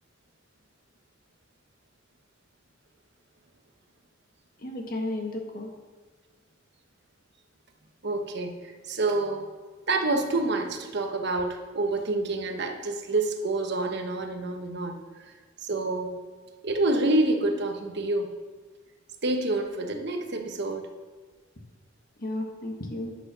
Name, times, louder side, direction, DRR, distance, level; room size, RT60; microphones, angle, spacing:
voice 1, 4.6-5.7 22.2-23.2, left 1 dB, 50° left, 2 dB, 1.5 m, -33 dB
voice 2, 8.0-9.5 9.9-15.0 15.6-16.2 16.6-18.3 19.2-20.9, right 2 dB, 60° right, 4 dB, 1.1 m, -27 dB
11.0 x 6.0 x 6.1 m, 1.4 s
head